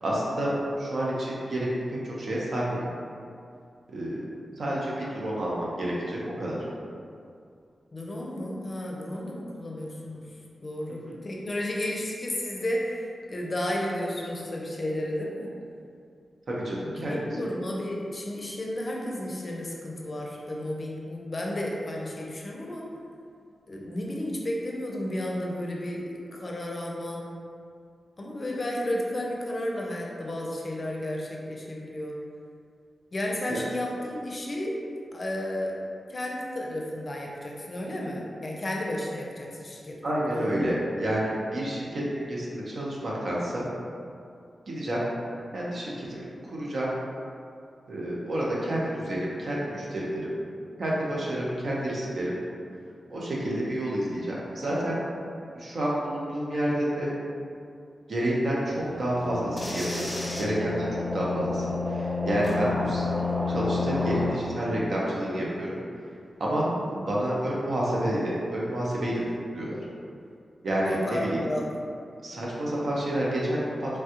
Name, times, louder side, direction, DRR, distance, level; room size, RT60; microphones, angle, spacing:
voice 1, 0.0-2.8 3.9-4.2 4.6-6.6 11.0-11.2 16.5-17.4 33.5-33.6 40.0-43.7 44.7-45.0 45.5-46.9 47.9-50.3 50.8-52.3 53.1-55.0 55.5-57.1 58.1-60.1 60.4-60.9 61.1-63.0 63.5-65.8 66.4-69.2 69.5-69.9 70.6-71.4 72.2-74.0, right 1 dB, 65° right, -5 dB, 0.7 m, -29 dB
voice 2, 7.9-10.3 10.6-13.0 13.3-15.5 16.8-22.8 23.7-27.3 28.2-32.1 33.1-34.8 35.1-35.7 36.1-40.0 40.3-40.6 70.8-71.6, left 1 dB, 40° left, -2 dB, 0.5 m, -32 dB
sound 1, 58.7-64.3, left 3 dB, 10° left, 1.0 m, -30 dB
3.2 x 2.3 x 2.8 m, 2.4 s
cardioid pair, 70°, 0 cm